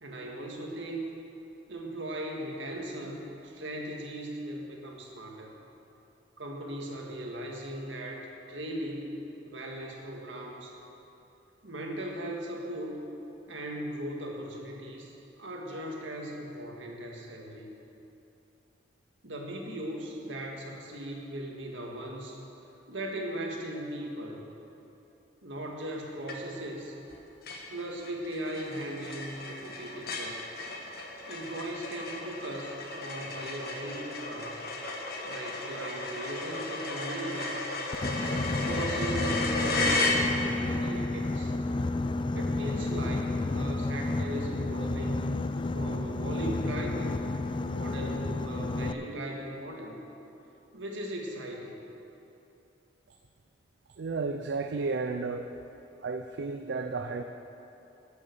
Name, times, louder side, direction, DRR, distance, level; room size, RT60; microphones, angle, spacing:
voice 1, 0.0-1.1 1.7-5.5 6.4-10.7 11.6-13.1 13.5-17.7 19.2-22.4 22.9-24.4 25.4-27.0 27.7-30.5 31.3-34.6 35.2-37.6 38.6-41.5 42.3-45.2 45.7-47.2 47.7-49.9 50.7-51.8, right 1 dB, 90° right, 0 dB, 1.7 m, -38 dB
sound 1, 26.3-26.7 27.1-27.2 27.5-40.7, left 2 dB, 55° left, 1.3 m, -34 dB
Boat Water vehicle, 37.9-48.9, left 2 dB, 25° left, 0.3 m, -31 dB
voice 2, 54.0-55.5 56.0-57.2, right 4 dB, 70° right, 6 dB, 0.5 m, -32 dB
13.5 x 7.0 x 6.7 m, 2.9 s
head